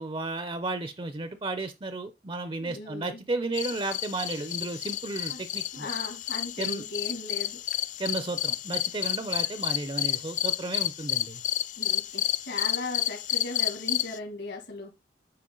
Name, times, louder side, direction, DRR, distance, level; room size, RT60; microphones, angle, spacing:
voice 1, 0.0-5.9 6.6-6.8 8.0-11.4, right 2 dB, 30° right, 0.6 m, -33 dB
voice 2, 2.6-3.2 5.3-5.4 5.7-7.6 11.8-14.9, left 2 dB, 75° left, 2.4 m, -37 dB
sound 1, 3.5-14.2, left 12 dB, 45° left, 0.4 m, -31 dB
8.4 x 4.6 x 3.8 m
head